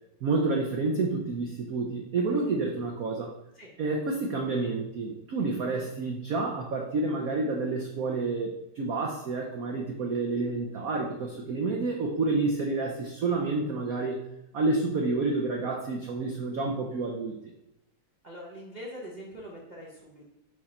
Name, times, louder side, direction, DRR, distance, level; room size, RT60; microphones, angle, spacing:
voice 1, 0.2-3.3 3.8-14.2 14.5-17.4, right 3 dB, 75° right, 0 dB, 0.8 m, -29 dB
voice 2, 18.2-20.3, equal, 45° right, -4 dB, 0.6 m, -43 dB
4.8 x 4.6 x 4.3 m, 0.85 s
omnidirectional pair, 2.4 m